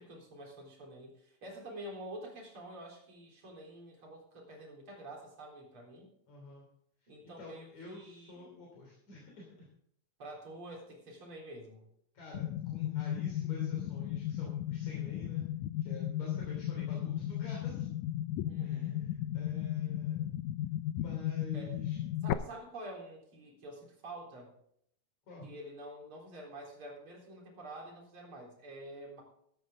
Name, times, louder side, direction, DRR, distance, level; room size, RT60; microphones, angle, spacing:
voice 1, 0.0-6.1 7.1-8.6 10.2-11.8 18.4-19.1 21.5-21.7 22.2-24.5 25.4-29.2, right 1 dB, 45° right, 0 dB, 4.6 m, -48 dB
voice 2, 6.3-6.6 7.2-9.7 12.1-15.5 15.8-17.9 18.6-20.3 21.0-22.0 25.3-25.5, left 3 dB, 70° left, -2 dB, 4.4 m, -49 dB
sound 1, 12.3-22.3, left 12 dB, 90° left, 2.2 m, -35 dB
13.5 x 13.0 x 3.7 m, 0.69 s
omnidirectional pair, 3.3 m